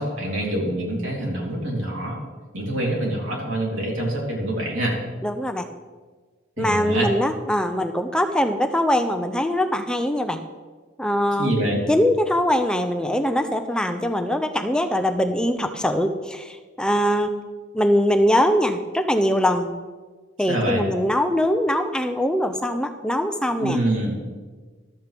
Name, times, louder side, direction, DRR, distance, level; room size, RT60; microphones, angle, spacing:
voice 1, 0.0-2.2 2.5-4.9 6.6-7.1 11.4-11.8 20.5-20.8 23.6-24.1, right 1 dB, 80° right, -2 dB, 3.4 m, -25 dB
voice 2, 5.2-5.7 6.6-10.4 11.0-11.5 11.9-17.3 17.7-19.7 20.4-23.8, equal, 5° left, 6 dB, 0.5 m, -22 dB
14.0 x 12.5 x 3.5 m, 1.4 s
head